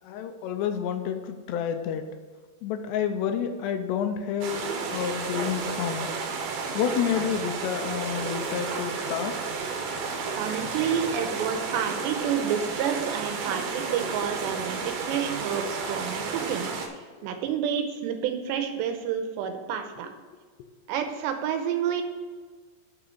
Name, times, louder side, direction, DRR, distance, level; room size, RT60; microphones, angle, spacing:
voice 1, 0.0-2.0 2.6-6.1 6.7-9.4 17.2-17.3, left 8 dB, 80° left, 7 dB, 2.7 m, -29 dB
sound 1, 4.4-16.9, right 4 dB, 70° right, 2.7 m, -32 dB
voice 2, 10.3-16.7 17.0-20.1 20.9-22.0, right 8 dB, 85° right, 7 dB, 2.9 m, -29 dB
6.9 x 6.3 x 6.5 m, 1.5 s
omnidirectional pair, 5.1 m